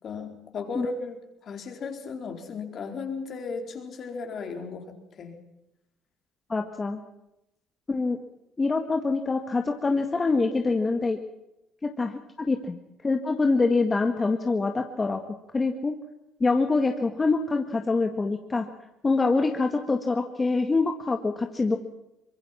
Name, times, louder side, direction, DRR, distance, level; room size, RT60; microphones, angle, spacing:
voice 1, 0.0-4.9 5.2-5.4, left 4 dB, 50° left, 4 dB, 4.4 m, -35 dB
voice 2, 6.5-7.0 7.9-8.2 8.6-11.2 11.8-12.8 13.0-15.2 15.5-15.9 16.4-18.7 19.0-21.8, left 3 dB, 25° left, 4 dB, 1.8 m, -25 dB
24.0 x 21.5 x 5.9 m, 0.88 s
supercardioid pair, 80°, 0 cm